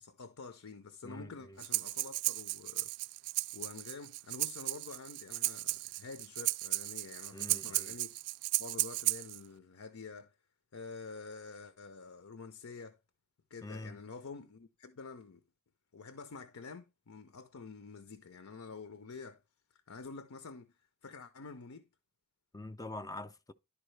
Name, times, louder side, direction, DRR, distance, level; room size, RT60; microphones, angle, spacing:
voice 1, 0.0-2.9 3.5-8.2 8.6-10.3 10.7-13.0 13.5-15.4 15.9-19.4 19.7-21.9, left 4 dB, 75° left, 0.7 m, -48 dB
voice 2, 1.0-1.6 7.3-8.0 13.6-13.9 22.5-23.5, left 2 dB, 15° left, 0.4 m, -45 dB
Breathing, 1.6-9.4, right 20 dB, 85° right, 0.3 m, -35 dB
11.5 x 4.7 x 3.2 m
head